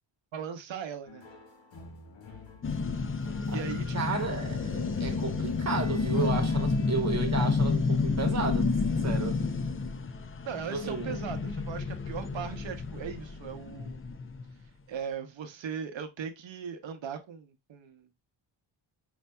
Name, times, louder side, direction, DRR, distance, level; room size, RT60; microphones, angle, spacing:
voice 1, 0.3-1.2 3.5-4.2 10.4-14.0 14.9-18.1, right 7 dB, 65° right, 0.8 m, -39 dB
sound 1, 1.1-7.0, left 3 dB, 60° left, 1.4 m, -48 dB
sound 2, 2.6-14.5, left 4 dB, 30° left, 0.4 m, -30 dB
voice 2, 3.9-8.7 9.0-9.4 10.6-11.2, right 4 dB, 35° right, 1.1 m, -33 dB
5.4 x 2.6 x 2.2 m
cardioid pair, 95°, 49 cm